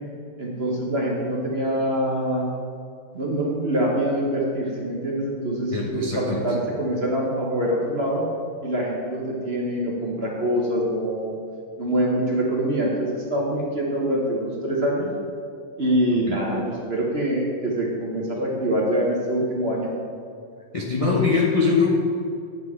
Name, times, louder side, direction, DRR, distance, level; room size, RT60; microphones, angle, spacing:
voice 1, 0.4-2.5 3.1-8.2 8.6-11.3 11.8-15.1 15.8-19.9, right 1 dB, 40° right, -3 dB, 0.9 m, -24 dB
voice 2, 5.7-6.4 16.3-16.4 20.7-21.9, left 4 dB, 55° left, -4 dB, 0.3 m, -22 dB
9.3 x 7.4 x 3.6 m, 2.4 s
omnidirectional pair, 2.3 m